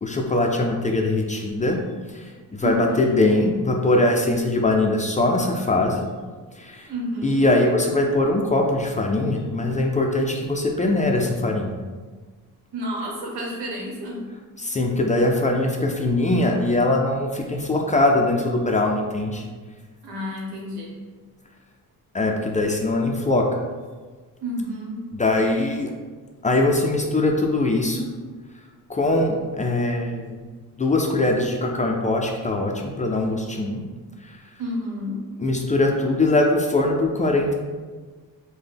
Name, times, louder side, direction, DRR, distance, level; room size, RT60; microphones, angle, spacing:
voice 1, 0.0-1.8 2.1-2.3 2.6-6.0 6.6-6.9 7.2-11.7 14.6-19.4 22.1-23.5 25.1-25.9 26.4-28.1 28.9-30.4 30.8-33.8 34.2-34.4 35.4-37.6, left 2 dB, 20° left, 1 dB, 0.4 m, -21 dB
voice 2, 2.6-3.2 6.9-7.4 12.7-14.3 20.0-20.9 24.4-25.0 34.6-35.2, equal, 80° right, -2 dB, 1.0 m, -30 dB
3.9 x 2.2 x 3.4 m, 1.4 s
cardioid pair, 80°, 38 cm